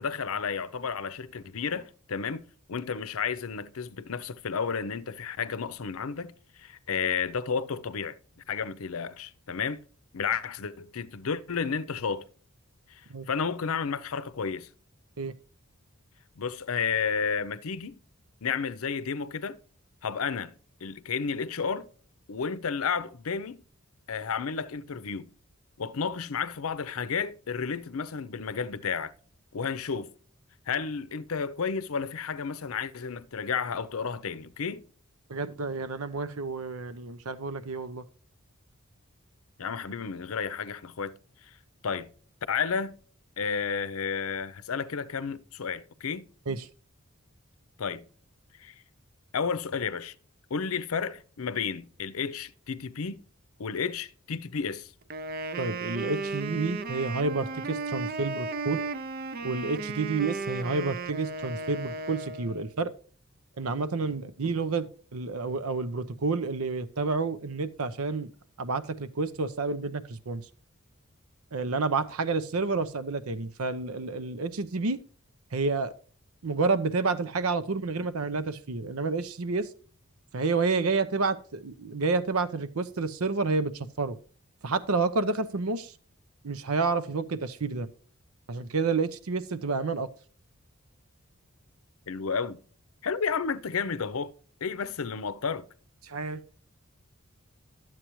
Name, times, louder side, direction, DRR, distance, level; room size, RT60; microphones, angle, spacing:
voice 1, 0.0-8.2 8.5-9.8 10.1-12.2 12.9-14.7 16.4-18.0 18.4-19.6 20.0-20.5 20.8-21.9 22.3-23.6 24.1-25.3 25.8-29.1 29.5-30.1 30.7-34.8 39.6-41.1 41.4-41.6 41.8-42.1 42.5-43.0 43.4-46.2 47.8-48.1 48.6-48.7 49.3-50.1 50.5-53.2 53.6-54.9 92.1-92.6 93.0-94.3 94.6-95.7, left 6 dB, 75° left, 0.6 m, -32 dB
voice 2, 35.3-38.0 46.5-46.7 55.6-58.8 59.4-62.9 63.6-68.3 68.6-70.4 71.5-75.0 75.5-75.9 76.4-79.7 80.3-84.2 84.6-85.9 86.4-87.9 88.5-90.1 96.0-96.4, right 4 dB, 85° right, 0.7 m, -29 dB
Wind instrument woodwind instrument, 55.1-62.7, right 3 dB, 45° right, 0.5 m, -35 dB
11.5 x 7.5 x 3.0 m
head